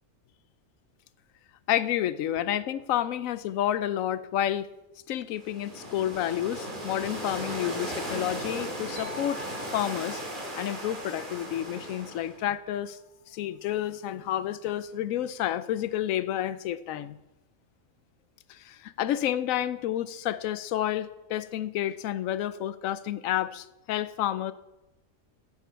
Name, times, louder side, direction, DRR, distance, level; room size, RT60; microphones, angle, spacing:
voice 1, 1.7-4.7 5.1-9.5 9.7-10.2 10.5-13.0 13.3-17.2 18.5-24.5, left 12 dB, 90° left, 1.0 m, -30 dB
sound 1, 5.3-12.4, right 1 dB, 40° right, 2.2 m, -37 dB
sound 2, 9.0-12.6, left 2 dB, 80° right, 2.2 m, -47 dB
12.5 x 7.6 x 4.5 m
omnidirectional pair, 1.4 m